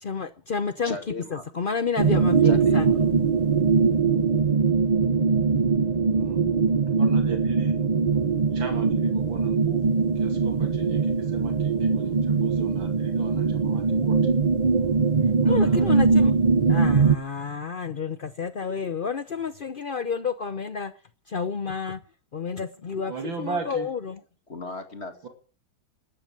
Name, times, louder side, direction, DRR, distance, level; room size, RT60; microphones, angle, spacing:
voice 1, 0.0-1.0 1.3-2.9 15.4-16.3 16.7-20.9 21.3-22.0 22.3-23.1 23.4-24.2, left 5 dB, 75° left, 0.4 m, -30 dB
voice 2, 0.8-1.5 2.4-3.0 24.5-25.3, left 2 dB, 35° left, 2.3 m, -37 dB
sound 1, 2.0-17.2, right 5 dB, 55° right, 0.4 m, -21 dB
voice 3, 6.1-6.4 7.0-7.8 8.1-14.2 15.3-15.8 23.1-23.9 25.2-25.3, right 4 dB, 75° right, 3.2 m, -38 dB
13.0 x 12.5 x 7.5 m
omnidirectional pair, 2.1 m